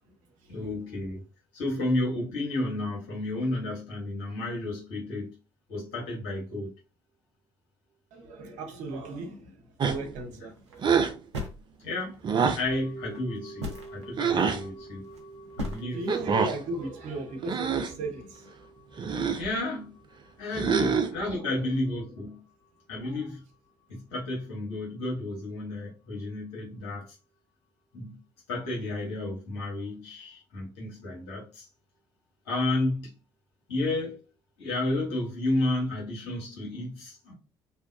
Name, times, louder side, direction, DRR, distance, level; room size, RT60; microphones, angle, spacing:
voice 1, 0.5-1.2 1.5-5.3 5.7-6.7 11.8-12.2 12.5-15.0 15.6-16.0 19.4-19.9 20.4-22.4 22.9-23.4 23.9-27.0 27.9-28.2 28.5-31.7 32.4-33.1 33.7-34.2 34.6-37.3, left 2 dB, 75° left, 1.3 m, -31 dB
voice 2, 8.1-11.0 15.6-18.5 20.7-21.6 23.0-23.2, right 2 dB, 65° right, 0.8 m, -37 dB
sound 1, 9.8-10.2 10.8-11.2 12.2-12.7 14.2-14.6 16.1-16.6 17.4-18.0 19.0-19.5 20.5-21.2, right 6 dB, 35° right, 0.5 m, -26 dB
sound 2, 10.5-10.9 11.3-12.2 13.1-13.2 13.6-14.0 14.9-15.2 15.5-15.8, equal, 90° right, 0.5 m, -35 dB
sound 3, 12.7-23.0 23.2-23.3, right 2 dB, 15° left, 1.5 m, -48 dB
2.8 x 2.2 x 2.3 m
figure-of-eight pair, 50°, 14 cm